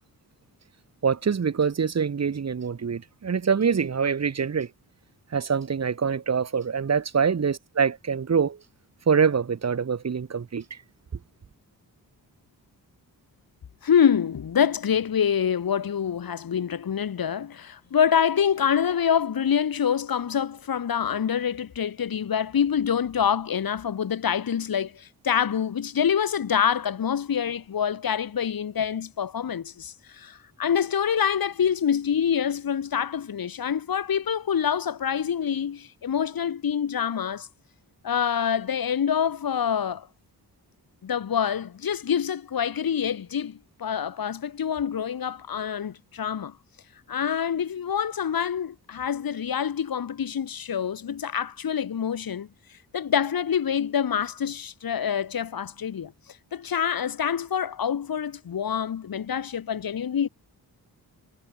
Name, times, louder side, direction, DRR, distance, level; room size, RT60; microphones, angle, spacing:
voice 1, 1.0-4.7 5.3-8.6 9.1-10.8, right 6 dB, 45° right, 1.9 m, -25 dB
voice 2, 13.8-37.5 38.0-40.1 41.0-46.5 47.1-52.5 52.9-56.1 56.5-60.3, left 8 dB, 65° left, 2.4 m, -26 dB
wide cardioid pair, 165°, 38 cm